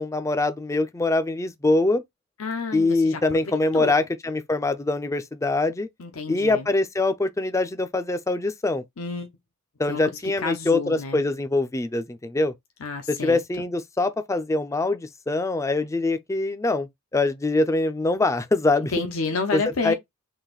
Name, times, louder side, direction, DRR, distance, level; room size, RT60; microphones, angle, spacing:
voice 1, 0.0-2.0 2.7-5.9 6.3-8.8 9.8-12.5 13.1-18.9 19.5-19.9, left 2 dB, 15° left, 0.4 m, -24 dB
voice 2, 2.4-3.4 3.7-4.0 6.0-6.7 9.0-9.3 9.9-11.2 12.8-13.4 18.9-19.9, left 4 dB, 85° left, 0.8 m, -30 dB
4.0 x 2.5 x 3.8 m
head